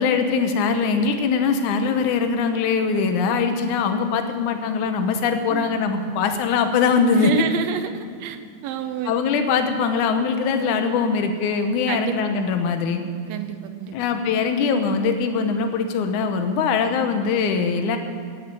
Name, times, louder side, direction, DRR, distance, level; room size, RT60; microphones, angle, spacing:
voice 1, 0.0-7.3 9.1-13.0 13.9-18.0, left 5 dB, 75° left, 7 dB, 2.4 m, -22 dB
voice 2, 7.2-9.1 11.9-12.4 13.2-14.0, right 8 dB, 75° right, 9 dB, 1.6 m, -29 dB
11.5 x 9.2 x 9.2 m, 2.4 s
omnidirectional pair, 3.7 m